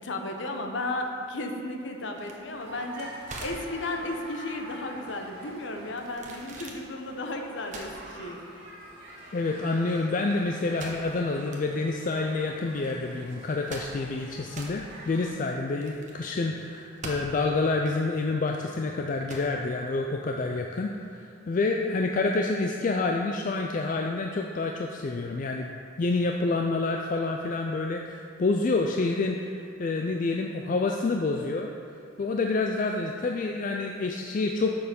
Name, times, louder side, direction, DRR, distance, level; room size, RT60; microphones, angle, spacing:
voice 1, 0.0-8.4, left 2 dB, 65° left, 3 dB, 0.9 m, -34 dB
sound 1, 2.2-20.7, right 2 dB, 40° right, 1.0 m, -45 dB
sound 2, 2.5-15.3, right 1 dB, 55° right, 1.8 m, -47 dB
voice 2, 9.3-25.7 26.0-31.7 32.2-34.8, left 3 dB, 40° left, 2 dB, 0.4 m, -28 dB
6.6 x 6.6 x 5.3 m, 2.5 s
head